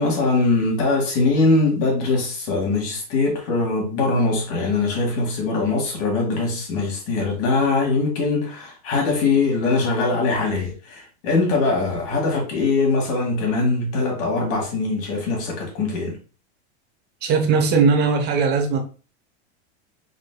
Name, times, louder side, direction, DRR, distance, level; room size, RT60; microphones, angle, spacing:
voice 1, 0.0-16.2, left 3 dB, 40° left, 2.0 m, -22 dB
voice 2, 17.2-18.8, right 5 dB, 30° right, 0.9 m, -19 dB
4.9 x 4.2 x 2.2 m
supercardioid pair, 160°, 34 cm